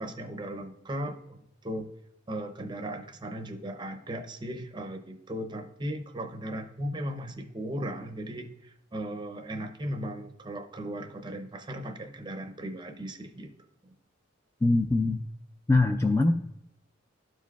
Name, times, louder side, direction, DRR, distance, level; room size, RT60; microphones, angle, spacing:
voice 1, 0.0-1.9 2.3-13.5, right 1 dB, 25° right, 6 dB, 0.6 m, -37 dB
voice 2, 14.6-15.2 15.7-16.3, left 2 dB, 15° left, 5 dB, 0.3 m, -22 dB
12.5 x 4.7 x 2.3 m, 0.83 s
head